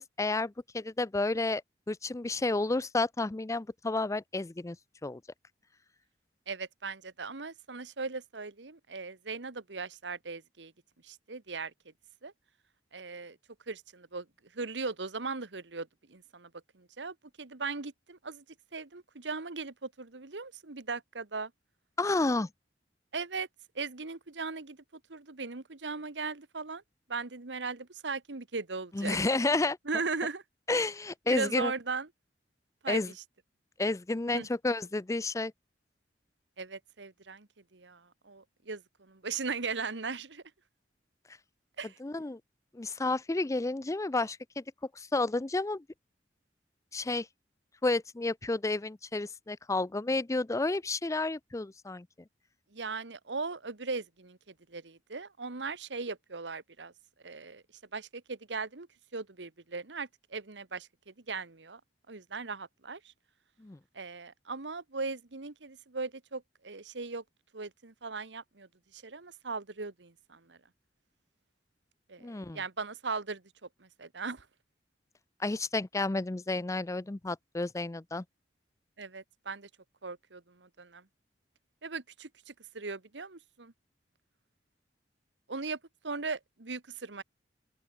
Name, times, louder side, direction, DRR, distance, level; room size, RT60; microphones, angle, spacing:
voice 1, 0.0-1.6 1.9-4.8 5.0-5.2 22.0-22.5 28.9-29.8 30.7-31.7 32.9-33.1 33.8-35.5 42.0-42.4 42.7-44.6 45.0-45.8 46.9-47.3 47.8-52.1 63.6-63.8 72.2-72.6 75.4-78.2, left 2 dB, 20° left, 0.5 m, -31 dB
voice 2, 6.5-10.7 11.0-11.7 12.2-12.3 12.9-13.4 13.7-14.2 14.5-16.5 16.7-18.4 18.7-21.5 23.1-23.5 23.7-24.8 25.1-26.8 27.1-29.3 29.8-30.4 31.3-32.1 32.8-33.0 34.3-34.5 36.6-40.4 41.8-42.0 52.7-54.4 54.7-56.9 57.2-57.6 57.9-58.9 59.1-61.8 62.1-63.0 63.9-67.2 67.5-70.6 72.1-73.4 73.8-74.4 79.0-79.7 80.0-81.0 81.8-83.7 85.5-85.8 86.0-87.2, right 4 dB, 80° right, 1.4 m, -38 dB
open air
head